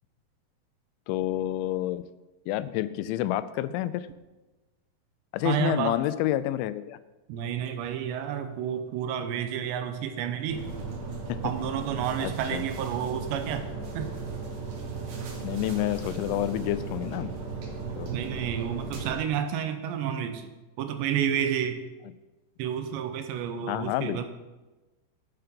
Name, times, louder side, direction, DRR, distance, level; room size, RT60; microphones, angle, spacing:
voice 1, 1.1-2.0 2.5-4.1 5.3-7.0 11.3-11.4 12.2-12.6 15.4-17.3 18.0-18.2 23.7-24.3, left 14 dB, 85° left, 15 dB, 2.9 m, -29 dB
voice 2, 5.4-6.0 7.3-10.6 11.4-13.7 13.9-14.1 18.1-20.5 20.8-21.8 22.6-24.3, right 9 dB, 80° right, 8 dB, 2.8 m, -30 dB
sound 1, 10.5-19.2, right 4 dB, 60° right, 3.6 m, -36 dB
11.5 x 8.1 x 5.2 m, 1.1 s
omnidirectional pair, 5.3 m